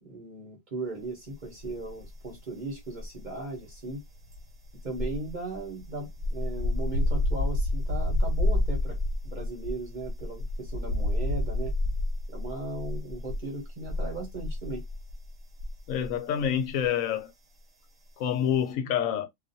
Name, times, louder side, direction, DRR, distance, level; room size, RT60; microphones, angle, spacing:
voice 1, 0.0-4.0 4.8-9.0 9.2-11.7 12.3-14.8, right 2 dB, 40° right, 0.9 m, -37 dB
sound 1, 1.6-2.4 2.6-16.2 16.4-16.7, left 1 dB, 70° right, 1.2 m, -30 dB
voice 2, 15.9-17.3 18.2-19.3, left 9 dB, 80° left, 1.0 m, -27 dB
2.5 x 2.3 x 2.6 m
omnidirectional pair, 1.4 m